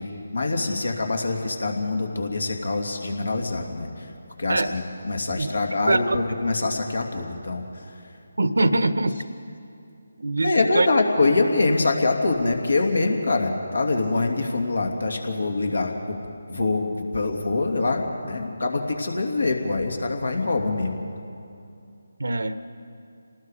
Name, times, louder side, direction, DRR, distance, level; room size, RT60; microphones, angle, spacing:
voice 1, 0.0-4.1 4.4-8.1 10.4-16.2 16.5-21.0, left 3 dB, 75° left, 3 dB, 2.8 m, -24 dB
voice 2, 5.9-6.2 8.4-9.2 10.2-10.9 22.2-22.7, right 2 dB, 75° right, 12 dB, 1.1 m, -23 dB
29.0 x 19.0 x 5.1 m, 2.6 s
figure-of-eight pair, 155°, 0 cm